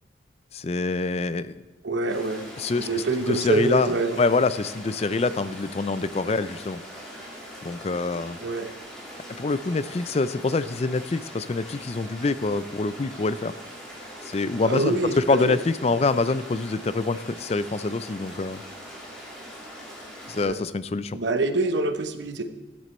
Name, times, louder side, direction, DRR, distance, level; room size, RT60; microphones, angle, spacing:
voice 1, 0.5-1.5 2.6-2.9 3.3-3.9 4.2-6.8 7.6-8.4 9.4-13.5 14.3-18.6 20.3-21.2, left 3 dB, 30° left, 15 dB, 0.4 m, -25 dB
voice 2, 1.8-2.5 2.8-4.2 8.4-8.7 14.6-15.6 20.4-20.6 21.1-22.5, right 3 dB, 65° right, 8 dB, 0.9 m, -26 dB
sound 1, 2.1-20.4, equal, 5° left, 3.1 m, -42 dB
13.5 x 9.6 x 4.3 m, 1.2 s
head